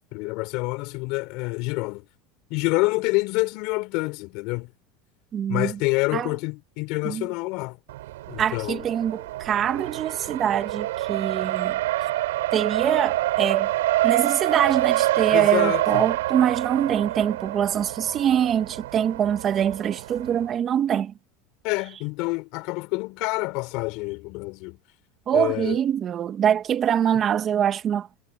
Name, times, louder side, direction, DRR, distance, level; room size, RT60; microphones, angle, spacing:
voice 1, 0.1-2.0 2.5-4.7 5.5-7.8 8.3-8.8 15.3-16.0 21.6-24.8 25.3-25.8, left 25 dB, 60° left, 6.0 m, -27 dB
voice 2, 5.3-5.8 6.1-6.3 7.0-7.3 8.4-11.8 12.5-13.7 14.0-21.1 25.3-28.1, right 9 dB, 30° right, 2.1 m, -24 dB
Race car auto racing, 7.9-20.5, right 16 dB, 90° right, 4.9 m, -26 dB
supercardioid pair, 135°, 0 cm